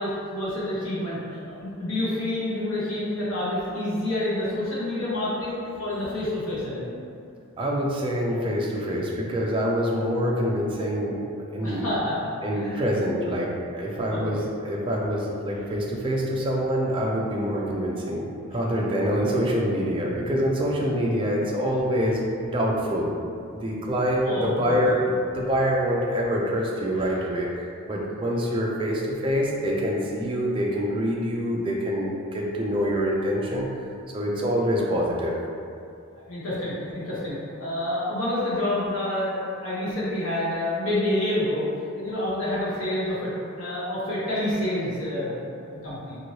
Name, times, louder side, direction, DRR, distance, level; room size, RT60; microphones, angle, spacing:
voice 1, 0.0-6.9 11.6-12.2 12.5-12.8 13.9-14.4 15.5-15.6 24.2-24.8 36.3-43.3 43.6-46.2, left 1 dB, 70° left, -9 dB, 1.1 m, -28 dB
voice 2, 7.6-11.9 12.4-23.1 23.5-27.5 27.9-33.7 34.1-35.3, equal, 25° right, -2 dB, 0.3 m, -25 dB
3.0 x 2.6 x 2.7 m, 2.5 s
head